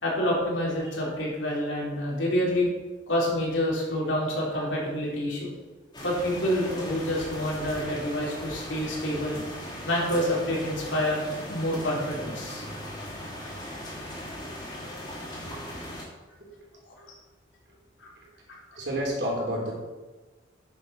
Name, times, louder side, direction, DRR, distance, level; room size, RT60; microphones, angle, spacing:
voice 1, 0.0-2.7 3.1-5.5 6.0-9.4 9.8-12.6 18.0-18.1 18.5-18.6, left 1 dB, 75° left, -3 dB, 3.5 m, -28 dB
sound 1, 5.9-16.0, left 1 dB, 25° left, 2.9 m, -38 dB
voice 2, 15.1-15.8 16.4-16.5 18.8-19.7, equal, 60° right, -3 dB, 3.5 m, -31 dB
9.9 x 7.4 x 5.5 m, 1.2 s
head